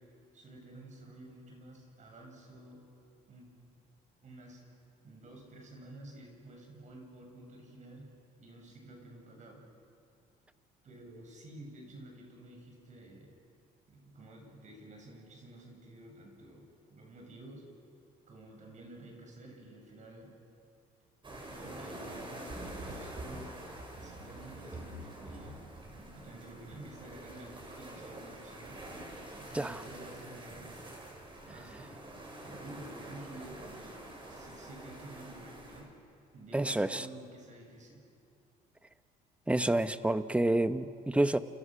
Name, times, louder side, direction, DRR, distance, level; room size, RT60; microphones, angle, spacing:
voice 1, 0.3-2.8 3.3-3.5 4.2-4.6 5.0-8.1 8.4-9.6 10.8-13.3 13.9-17.6 18.3-20.3 21.5-23.5 24.0-25.6 26.1-28.8 29.4-30.9 31.4-31.7 32.1-34.0 34.3-35.9 36.3-38.0, right 1 dB, 45° right, 1 dB, 7.7 m, -51 dB
sound 1, 21.2-35.8, right 1 dB, 30° right, 7.0 m, -46 dB
voice 2, 36.5-37.1 39.5-41.4, right 1 dB, 5° right, 11 dB, 1.0 m, -28 dB
29.5 x 29.5 x 6.5 m, 2.5 s
cardioid pair, 110°, 17 cm